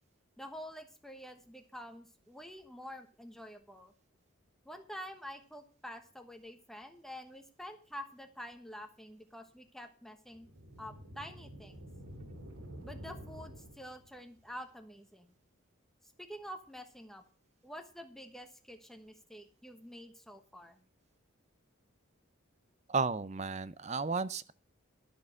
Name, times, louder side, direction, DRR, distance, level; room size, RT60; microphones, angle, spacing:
voice 1, 0.4-3.9 4.6-10.5 10.8-11.8 12.8-15.3 16.2-17.2 17.6-20.8, equal, ahead, 1.1 m, -48 dB
sound 1, 10.3-14.2, equal, 80° right, 2.9 m, -49 dB
voice 2, 22.9-24.5, right 4 dB, 35° right, 0.5 m, -33 dB
12.0 x 6.8 x 6.2 m
head